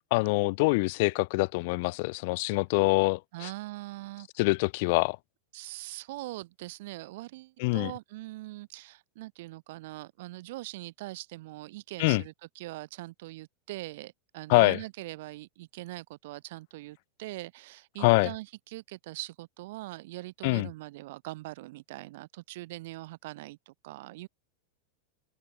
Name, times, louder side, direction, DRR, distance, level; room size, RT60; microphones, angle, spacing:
voice 1, 0.1-3.5 4.4-5.2 7.6-7.9 12.0-12.2 14.5-14.8 18.0-18.3 20.4-20.7, left 26 dB, 50° left, 0.6 m, -25 dB
voice 2, 3.3-4.3 5.5-24.3, right 19 dB, 50° right, 3.0 m, -42 dB
open air
figure-of-eight pair, 90°, 0 cm